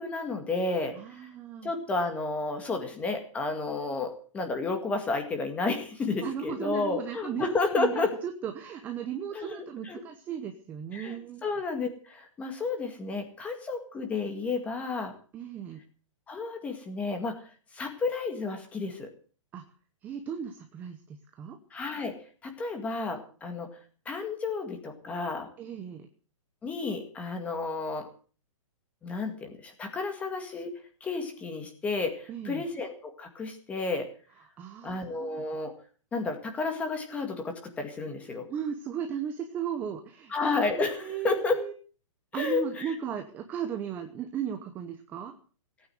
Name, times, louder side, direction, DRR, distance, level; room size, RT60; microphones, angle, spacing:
voice 1, 0.0-1.3 1.6-8.1 9.3-10.0 10.9-11.2 11.4-15.1 16.3-17.4 17.7-19.1 21.7-22.2 22.4-23.7 24.1-25.5 26.6-28.1 29.0-30.7 31.0-34.1 34.8-35.7 36.1-38.4 40.3-41.6 42.3-42.9, left 3 dB, 10° left, 6 dB, 2.0 m, -31 dB
voice 2, 0.9-1.7 6.2-11.4 15.3-15.8 19.5-19.6 20.0-21.6 25.6-26.1 32.3-32.6 34.6-35.4 38.5-40.3 40.7-41.7 42.3-45.3, right 8 dB, 10° right, 6 dB, 0.8 m, -36 dB
17.5 x 9.2 x 7.7 m, 0.42 s
hypercardioid pair, 170°, 17 cm